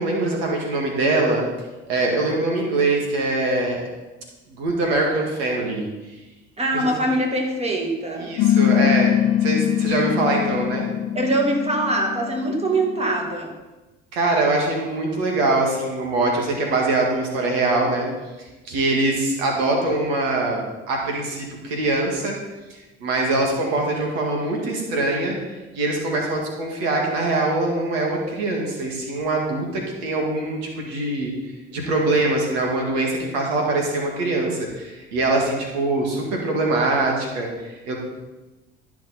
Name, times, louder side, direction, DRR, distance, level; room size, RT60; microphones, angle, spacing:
voice 1, 0.0-1.4 1.9-3.8 4.6-5.8 6.7-7.0 8.2-9.1 9.4-10.9 14.1-18.1 18.7-20.6 20.9-22.3 22.7-25.4 25.7-31.3 31.7-37.9, right 2 dB, 85° right, 0 dB, 2.1 m, -23 dB
voice 2, 6.6-8.3 11.1-13.5, right 1 dB, 20° right, 1 dB, 2.2 m, -23 dB
sound 1, 8.4-13.3, left 11 dB, 55° left, 0.5 m, -22 dB
13.0 x 5.9 x 4.2 m, 1.1 s
supercardioid pair, 80°, 30 cm